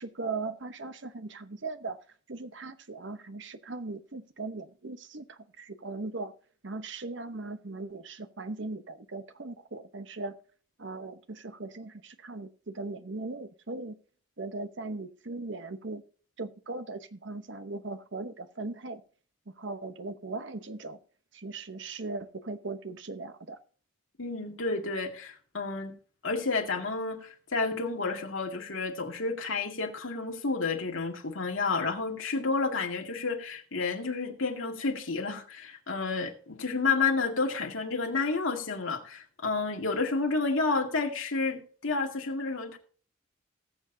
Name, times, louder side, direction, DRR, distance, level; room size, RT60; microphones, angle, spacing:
voice 1, 0.0-2.0 2.3-6.3 6.6-10.3 10.8-14.0 14.4-16.0 16.4-19.0 19.5-21.0 21.3-23.6, right 3 dB, 60° right, 11 dB, 0.9 m, -39 dB
voice 2, 24.2-26.0 26.2-42.8, left 4 dB, 75° left, 2 dB, 2.1 m, -30 dB
19.0 x 7.2 x 2.7 m, 0.42 s
head